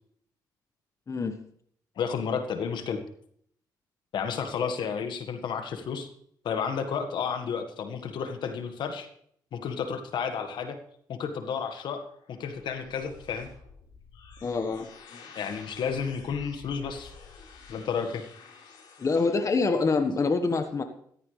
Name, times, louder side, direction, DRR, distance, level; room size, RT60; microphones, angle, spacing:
voice 1, 2.0-3.0 4.1-6.1 6.4-9.1 9.5-10.8 11.1-12.0 12.3-13.5 15.3-17.1 17.7-18.2, left 6 dB, 70° left, 7 dB, 1.8 m, -31 dB
sound 1, 11.8-19.4, left 5 dB, 90° left, 4.6 m, -50 dB
voice 2, 14.4-14.9 15.1-15.2 19.0-20.8, left 4 dB, 40° left, 7 dB, 1.5 m, -25 dB
14.5 x 14.5 x 3.4 m, 0.64 s
cardioid pair, 75°, 8 cm